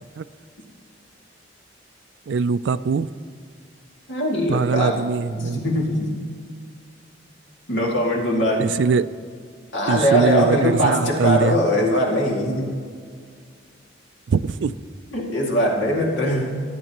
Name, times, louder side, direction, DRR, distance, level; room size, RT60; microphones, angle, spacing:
voice 1, 2.3-3.1 4.5-5.6 8.6-9.1 9.9-11.6 14.3-14.8, right 5 dB, 65° right, 15 dB, 0.4 m, -22 dB
voice 2, 4.1-5.0 5.3-6.2 7.7-8.7 9.7-12.7 15.1-16.6, equal, 70° left, -2 dB, 2.4 m, -21 dB
20.5 x 9.4 x 3.0 m, 2.1 s
head